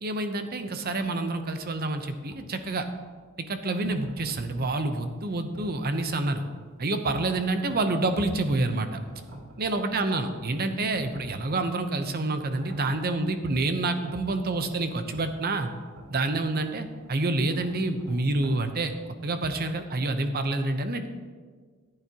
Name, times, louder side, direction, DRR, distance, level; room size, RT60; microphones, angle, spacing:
voice 1, 0.0-2.9 3.5-6.4 6.8-9.0 9.6-15.7 16.1-18.9 19.2-21.1, right 2 dB, 45° right, 8 dB, 0.8 m, -28 dB
sound 1, 1.5-19.0, right 1 dB, 75° right, 1.8 m, -50 dB
14.5 x 8.9 x 2.9 m, 1.5 s
head